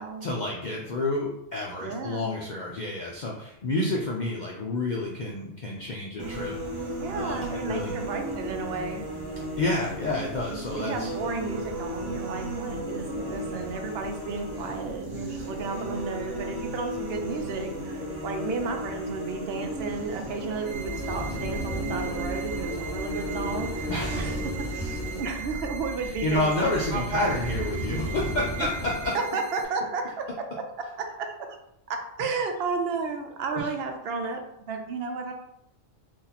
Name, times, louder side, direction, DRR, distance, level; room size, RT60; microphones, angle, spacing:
voice 1, 0.2-6.5 7.1-8.0 9.6-11.1 23.9-24.4 26.0-29.1 33.5-33.7, left 2 dB, 60° left, -3 dB, 0.4 m, -29 dB
voice 2, 1.8-2.3 7.0-9.0 9.4-9.5 10.7-27.3 28.6-28.7 29.1-30.1 31.0-31.3 31.9-35.3, right 4 dB, 65° right, 4 dB, 0.7 m, -33 dB
sound 1, 6.2-25.2, right 1 dB, 25° right, 0.5 m, -35 dB
sound 2, 20.7-29.1, equal, 30° left, 1.3 m, -35 dB
sound 3, 20.7-29.7, right 6 dB, 80° right, 1.0 m, -41 dB
2.8 x 2.6 x 3.9 m, 0.81 s
omnidirectional pair, 1.3 m